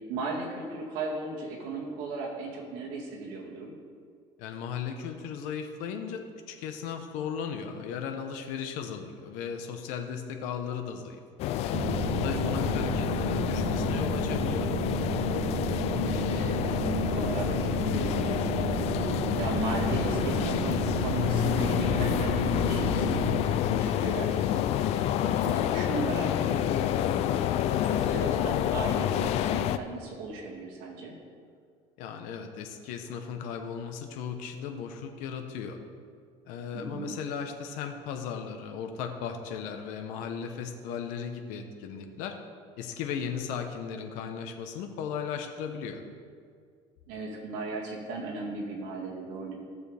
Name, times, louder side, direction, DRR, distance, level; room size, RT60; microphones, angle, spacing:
voice 1, 0.1-3.7 12.4-12.7 16.1-24.6 25.2-27.4 27.8-31.2 36.7-37.2 47.1-49.6, right 3 dB, 80° right, -3 dB, 2.3 m, -37 dB
voice 2, 4.4-11.6 12.1-14.8 32.0-35.8 36.5-42.4 42.8-46.0, left 7 dB, 75° left, 5 dB, 1.0 m, -36 dB
sound 1, 11.4-29.8, left 11 dB, 50° left, 0.4 m, -28 dB
sound 2, 11.7-23.4, right 11 dB, 45° right, 0.5 m, -33 dB
15.5 x 6.9 x 3.5 m, 2.1 s
cardioid pair, 160°, 13 cm